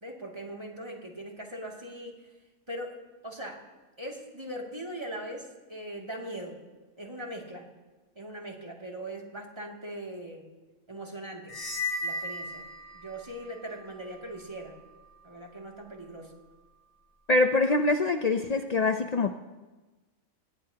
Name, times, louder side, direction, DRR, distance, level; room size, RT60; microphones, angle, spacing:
voice 1, 0.0-2.3 2.7-3.0 3.2-3.6 4.0-6.6 7.0-7.7 8.2-10.4 10.9-11.6 12.0-12.6 12.9-14.7 15.2-16.4, right 1 dB, 20° right, -1 dB, 2.5 m, -40 dB
sound 1, 11.5-13.4, left 2 dB, 15° left, 1.2 m, -34 dB
voice 2, 17.3-19.3, left 3 dB, 65° left, 7 dB, 0.4 m, -24 dB
21.5 x 19.0 x 2.9 m, 1.2 s
omnidirectional pair, 1.4 m